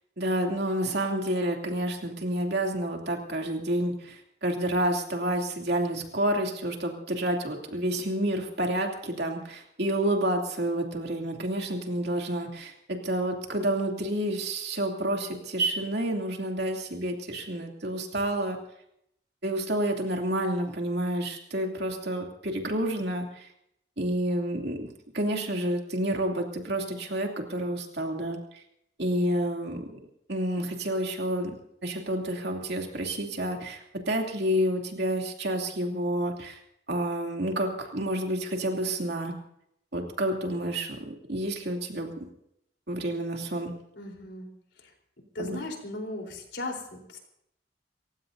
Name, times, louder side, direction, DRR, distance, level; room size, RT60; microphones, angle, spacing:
voice 1, 0.2-18.6 19.4-23.5 24.0-28.4 29.0-29.9 30.3-31.5 31.8-36.6 36.9-39.3 39.9-42.2 42.9-43.7 45.4-45.6, right 1 dB, 70° right, 1 dB, 2.8 m, -29 dB
voice 2, 44.0-44.5 45.3-47.2, left 2 dB, 85° left, 1 dB, 3.9 m, -37 dB
29.0 x 15.5 x 2.7 m, 0.75 s
head